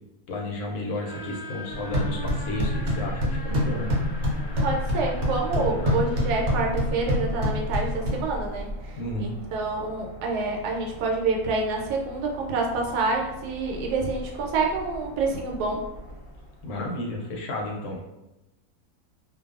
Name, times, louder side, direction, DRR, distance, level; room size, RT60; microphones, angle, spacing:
voice 1, 0.3-3.9 5.5-6.1 9.0-9.3 16.6-18.0, left 1 dB, 75° left, -1 dB, 1.0 m, -32 dB
sound 1, 1.0-16.9, left 1 dB, 40° left, 0.8 m, -41 dB
sound 2, 1.7-8.7, left 1 dB, 65° right, 0.8 m, -27 dB
voice 2, 4.6-8.9 9.2-15.8, right 3 dB, 80° right, 0 dB, 1.1 m, -27 dB
2.5 x 2.2 x 2.3 m, 0.96 s
omnidirectional pair, 1.7 m